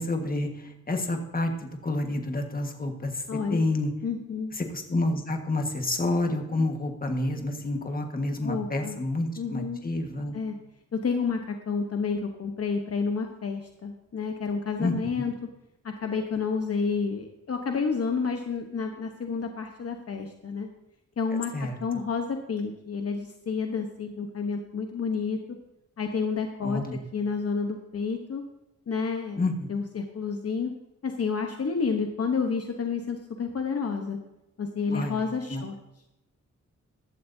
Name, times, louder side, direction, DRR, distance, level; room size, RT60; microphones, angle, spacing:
voice 1, 0.0-3.2 3.5-3.9 4.6-10.3 14.8-15.2 21.5-21.8 26.6-27.0 29.4-29.5 34.9-35.2 35.5-35.6, left 2 dB, 30° left, 4 dB, 1.5 m, -29 dB
voice 2, 3.3-3.7 4.0-4.5 8.4-9.0 9.4-9.8 10.3-10.6 10.9-15.3 15.8-20.7 21.2-25.4 26.0-26.8 27.1-28.4 28.9-29.4 29.7-30.7 31.0-34.2 34.6-35.8, left 5 dB, 50° left, 4 dB, 1.0 m, -30 dB
15.0 x 11.5 x 2.7 m, 0.93 s
wide cardioid pair, 120°, 30 cm